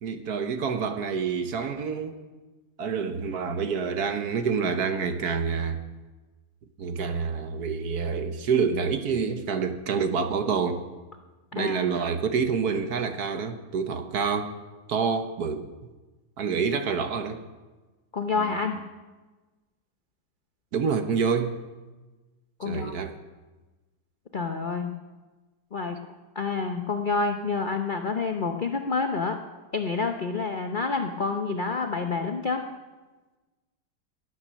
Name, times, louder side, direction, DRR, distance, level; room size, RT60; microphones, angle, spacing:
voice 1, 0.0-2.2 2.8-5.8 6.8-10.8 11.5-14.5 14.9-15.7 16.4-17.4 18.3-18.6 20.7-21.6 22.6-23.1, right 5 dB, 60° right, 8 dB, 1.3 m, -27 dB
voice 2, 11.5-11.9 18.1-18.8 22.6-23.0 24.3-24.9 25.7-26.0 26.4-29.4 29.7-32.6, left 4 dB, 80° left, 5 dB, 0.4 m, -28 dB
18.0 x 8.8 x 6.3 m, 1.2 s
omnidirectional pair, 2.1 m